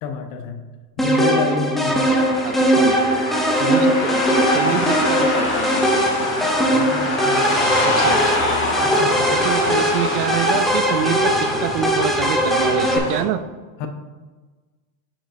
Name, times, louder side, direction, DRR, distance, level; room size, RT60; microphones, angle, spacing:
voice 1, 0.0-0.6 1.0-2.1 6.7-8.1 8.8-9.3 9.7-9.8 13.8-13.9, left 5 dB, 55° left, 5 dB, 1.0 m, -28 dB
sound 1, 1.0-13.0, equal, ahead, 0.4 m, -20 dB
sound 2, 1.8-13.2, left 2 dB, 25° left, 1.8 m, -25 dB
voice 2, 2.4-3.0 3.6-5.8 7.8-8.4 9.3-11.3 11.6-13.4, right 10 dB, 65° right, 12 dB, 0.6 m, -26 dB
6.3 x 6.3 x 2.6 m, 1.3 s
supercardioid pair, 125°, 48 cm